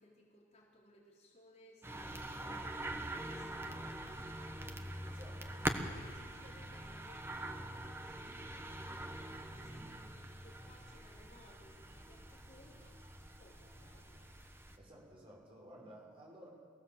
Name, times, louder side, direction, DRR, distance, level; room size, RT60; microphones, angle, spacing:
voice 1, 0.0-5.1 5.8-14.3, left 1 dB, 35° left, -4 dB, 4.2 m, -62 dB
sound 1, 1.8-14.8, right 1 dB, 15° right, 1.3 m, -44 dB
voice 2, 5.0-6.0 9.6-9.9 14.7-16.5, right 1 dB, 30° right, -2 dB, 6.3 m, -56 dB
22.5 x 16.0 x 7.7 m, 2.3 s
head